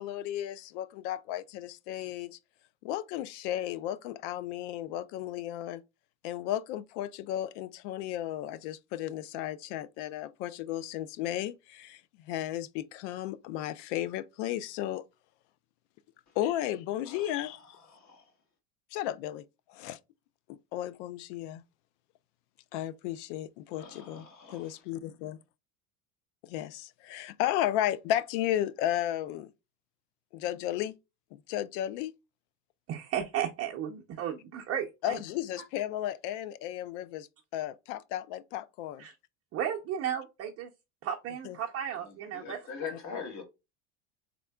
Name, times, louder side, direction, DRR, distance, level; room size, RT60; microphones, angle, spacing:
voice 1, 0.0-2.3 2.8-5.8 6.2-15.0 16.4-17.8 18.9-19.4 19.7-20.0 20.5-21.6 22.7-24.3 24.5-25.4 26.4-29.5 30.3-30.9 31.5-32.1 35.0-37.3 37.5-39.0 41.4-41.6, left 12 dB, 65° left, 0.6 m, -34 dB
voice 2, 17.1-17.6 17.9-18.3 23.7-24.8 42.0-43.4, left 6 dB, 45° left, 2.0 m, -43 dB
voice 3, 32.9-35.2 39.0-39.1 39.5-40.7 41.0-42.6, right 9 dB, 35° right, 0.7 m, -34 dB
3.7 x 3.5 x 2.2 m
supercardioid pair, 110°, 39 cm